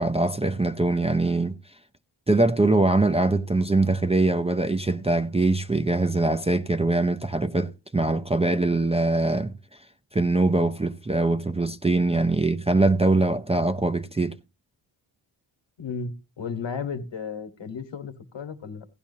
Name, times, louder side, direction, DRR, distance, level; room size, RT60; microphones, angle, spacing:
voice 1, 0.0-1.5 2.3-9.5 10.1-14.4, right 2 dB, 15° right, 0.5 m, -22 dB
voice 2, 15.8-18.8, left 5 dB, 65° left, 1.5 m, -34 dB
16.0 x 10.5 x 2.7 m
cardioid pair, 85°, 48 cm